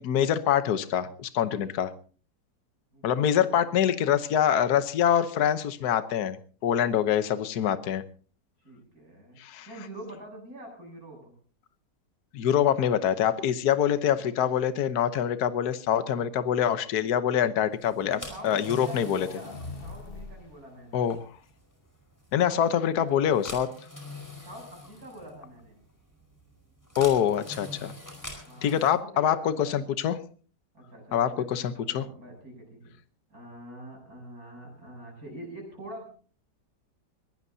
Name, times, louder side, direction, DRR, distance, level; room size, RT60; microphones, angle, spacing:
voice 1, 0.0-1.9 3.0-6.4 6.6-8.0 9.4-9.7 12.3-18.2 18.4-19.3 20.9-21.2 22.3-23.7 27.0-27.9 28.6-30.2 31.1-32.0, left 9 dB, 65° left, 11 dB, 1.5 m, -25 dB
voice 2, 2.9-4.1 8.6-9.4 9.7-11.3 18.0-21.1 22.4-23.2 24.4-25.8 28.5-29.8 30.7-32.8 33.3-36.1, right 1 dB, 55° right, 1 dB, 8.4 m, -45 dB
sound 1, 17.8-28.9, left 2 dB, 10° left, 4.8 m, -45 dB
sound 2, 18.6-20.5, left 3 dB, 40° left, 1.1 m, -43 dB
22.5 x 18.5 x 2.8 m, 0.41 s
omnidirectional pair, 1.9 m